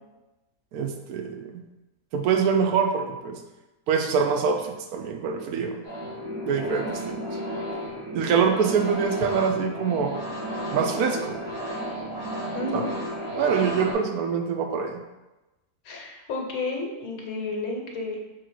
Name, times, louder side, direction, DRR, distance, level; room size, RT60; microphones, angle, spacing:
voice 1, 0.7-1.5 2.1-3.4 3.9-5.8 6.5-7.1 8.1-10.2 10.7-11.3 12.7-12.8 13.4-15.0, right 6 dB, 85° right, 5 dB, 1.1 m, -24 dB
sound 1, 5.8-13.9, equal, 15° right, 1.0 m, -32 dB
voice 2, 12.5-12.9 15.8-18.2, left 3 dB, 70° left, 1 dB, 1.2 m, -31 dB
3.8 x 3.1 x 4.6 m, 1.1 s
omnidirectional pair, 1.5 m